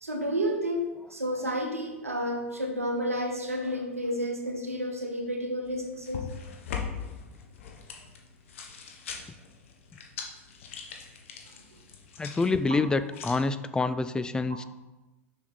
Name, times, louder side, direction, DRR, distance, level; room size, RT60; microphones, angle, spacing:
voice 1, 0.0-6.2, equal, 85° right, 3 dB, 1.1 m, -31 dB
sound 1, 5.7-13.4, left 6 dB, 65° left, 1.1 m, -41 dB
voice 2, 12.2-14.6, left 3 dB, 10° left, 12 dB, 0.3 m, -27 dB
6.4 x 5.8 x 4.3 m, 1.1 s
figure-of-eight pair, 95°, 7 cm